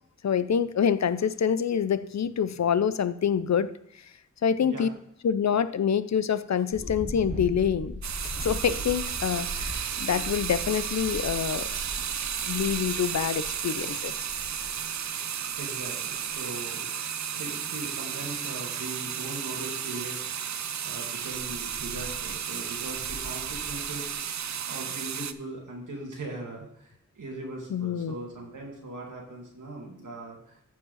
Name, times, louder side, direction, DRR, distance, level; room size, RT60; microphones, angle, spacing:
voice 1, 0.2-3.7 4.4-4.9 5.2-7.9 8.2-11.7 12.4-14.1 27.7-28.1, left 8 dB, 65° left, 14 dB, 0.6 m, -26 dB
sound 1, 6.7-14.9 16.3-16.4 21.3-22.4 22.7-24.1, equal, 30° left, 3.8 m, -40 dB
sound 2, 8.0-25.3, right 8 dB, 65° right, 0.5 m, -33 dB
voice 2, 15.6-16.9 17.3-24.1 24.7-30.6, right 2 dB, 85° right, -1 dB, 2.3 m, -40 dB
14.0 x 4.8 x 4.0 m, 0.74 s
wide cardioid pair, 70°, 30 cm